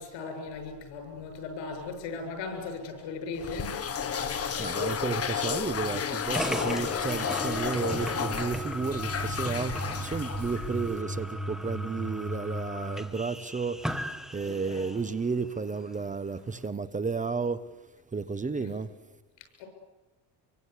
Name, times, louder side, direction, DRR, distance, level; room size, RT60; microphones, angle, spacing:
voice 1, 0.0-3.8 4.8-4.9 9.9-10.0 14.4-14.9 18.6-18.8 19.6-19.7, left 4 dB, 85° left, 7.3 m, -38 dB
sound 1, 3.4-11.0, left 7 dB, 35° left, 1.6 m, -32 dB
voice 2, 4.6-13.8 14.3-17.6 18.1-18.9, right 4 dB, 20° right, 0.9 m, -32 dB
sound 2, 6.3-15.1, equal, ahead, 1.3 m, -35 dB
26.0 x 24.0 x 8.3 m
cardioid pair, 140°, 43 cm